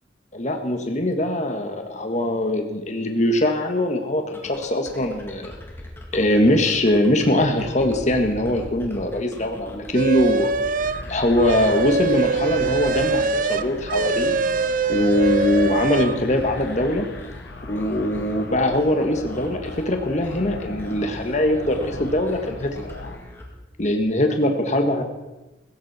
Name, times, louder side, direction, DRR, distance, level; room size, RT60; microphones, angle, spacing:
voice 1, 0.3-5.5 6.1-10.5 11.1-14.3 14.9-17.1 17.7-22.9 23.8-25.0, left 1 dB, 40° left, 5 dB, 1.6 m, -22 dB
sound 1, 4.3-24.0, left 1 dB, 10° left, 1.9 m, -42 dB
sound 2, 9.9-11.0 11.4-16.2, right 4 dB, 45° right, 0.5 m, -23 dB
sound 3, 10.7-23.2, left 2 dB, 60° left, 1.2 m, -38 dB
16.0 x 15.0 x 4.3 m, 1.1 s
head